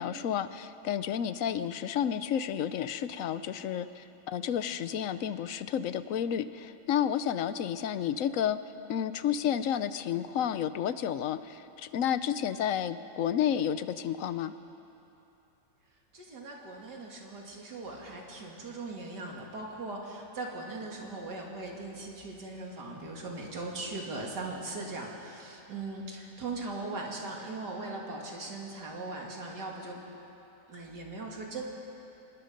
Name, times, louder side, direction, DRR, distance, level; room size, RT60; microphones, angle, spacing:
voice 1, 0.0-8.6 8.9-14.5, left 9 dB, 65° left, 13 dB, 0.9 m, -31 dB
voice 2, 16.1-30.0 30.7-31.6, right 2 dB, 80° right, -1 dB, 3.2 m, -39 dB
25.0 x 21.0 x 5.3 m, 2.9 s
omnidirectional pair, 1.8 m